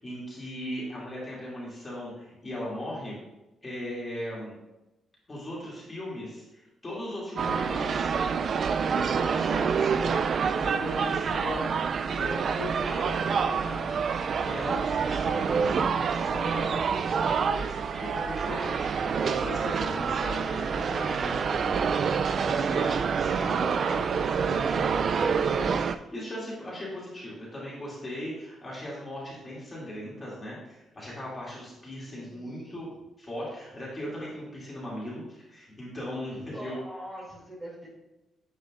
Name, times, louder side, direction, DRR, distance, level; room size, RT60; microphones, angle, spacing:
voice 1, 0.0-3.2 3.6-4.5 5.3-8.1 8.8-11.6 12.1-16.7 17.2-21.9 22.4-32.9 33.2-36.8, left 1 dB, 25° left, -6 dB, 2.5 m, -38 dB
sound 1, 7.4-26.0, right 6 dB, 50° right, 0.3 m, -27 dB
voice 2, 32.1-32.8 36.5-37.9, equal, 10° right, -6 dB, 2.6 m, -43 dB
9.8 x 5.3 x 2.5 m, 0.99 s
cardioid pair, 115°, 0 cm